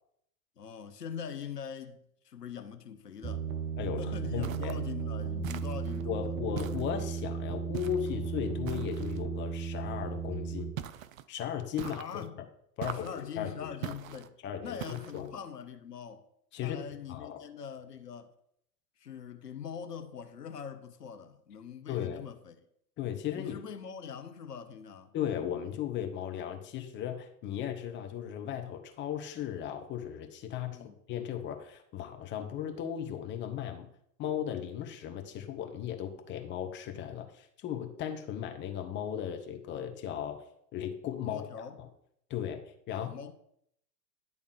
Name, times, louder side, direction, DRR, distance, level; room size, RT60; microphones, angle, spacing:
voice 1, 0.6-3.5 4.0-6.3 11.8-12.4 12.8-16.2 16.6-18.3 19.0-22.6 23.3-25.1 30.7-31.0 41.2-41.8 42.9-43.3, left 7 dB, 75° left, 0.9 m, -43 dB
sound 1, 3.2-10.7, right 6 dB, 20° right, 0.9 m, -35 dB
voice 2, 3.8-4.7 6.0-10.7 11.3-12.2 12.8-13.9 14.4-15.3 16.5-16.8 17.1-17.4 21.9-22.2 23.0-23.6 25.1-33.9 34.2-40.4 40.7-41.9 42.3-42.6 42.9-43.1, left 9 dB, 25° left, 0.9 m, -36 dB
sound 2, 4.4-4.9 5.4-6.0 6.6-7.2 7.7-8.1 8.7-9.2 10.8-11.3 11.8-12.3 12.8-13.3 13.8-14.3 14.8-15.3, right 11 dB, 60° right, 0.6 m, -42 dB
10.5 x 3.6 x 6.3 m
figure-of-eight pair, 95°, 48 cm